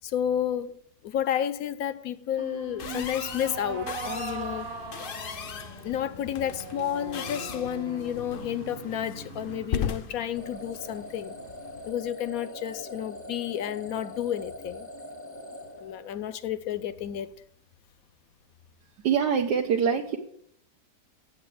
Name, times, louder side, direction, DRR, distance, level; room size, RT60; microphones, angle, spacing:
voice 1, 0.0-0.8 1.0-4.7 5.8-11.3 11.9-14.9 15.8-17.3, left 10 dB, 65° left, 1.0 m, -31 dB
sound 1, 2.3-11.7, right 6 dB, 45° right, 0.9 m, -41 dB
sound 2, 2.8-11.9, left 8 dB, 85° left, 0.4 m, -38 dB
sound 3, 10.3-16.5, left 1 dB, 20° left, 0.4 m, -43 dB
voice 2, 19.0-20.2, right 7 dB, 80° right, 1.5 m, -24 dB
8.0 x 7.9 x 7.6 m
omnidirectional pair, 1.8 m